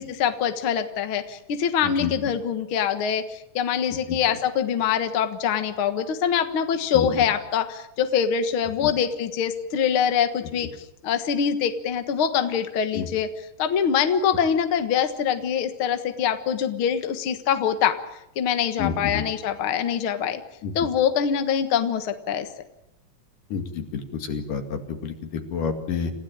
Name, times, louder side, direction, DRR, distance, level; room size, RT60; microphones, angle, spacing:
voice 1, 0.0-10.7 11.0-13.3 13.6-18.0 18.4-20.4 20.8-22.5, left 8 dB, 50° left, 8 dB, 2.0 m, -24 dB
voice 2, 1.8-2.1 3.9-4.2 6.9-7.1 8.8-8.9 10.4-10.5 12.9-13.1 18.8-19.3 20.6-20.7 23.5-26.1, left 6 dB, 85° left, 5 dB, 3.9 m, -29 dB
28.5 x 16.0 x 8.9 m, 0.85 s
omnidirectional pair, 3.7 m